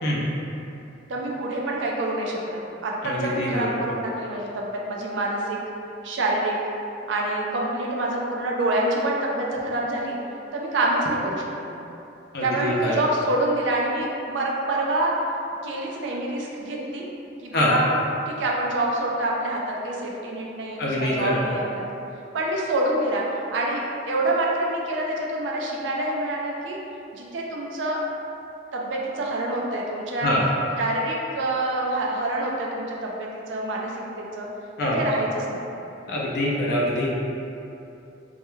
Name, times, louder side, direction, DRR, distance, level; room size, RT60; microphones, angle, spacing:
voice 1, 1.1-5.6 6.0-6.6 7.1-10.2 10.5-11.7 12.4-15.1 15.6-17.0 17.4-17.9 18.3-21.8 22.3-23.2 23.5-26.8 27.1-28.0 28.7-30.3 30.8-33.9 34.2-34.5 34.9-35.6, right 1 dB, 75° right, -2 dB, 0.4 m, -26 dB
voice 2, 3.0-3.8 12.3-13.0 17.5-17.8 20.8-21.4 30.2-30.4 34.8-35.0 36.1-37.1, left 1 dB, 60° left, -5 dB, 0.4 m, -24 dB
2.2 x 2.1 x 3.0 m, 2.8 s
head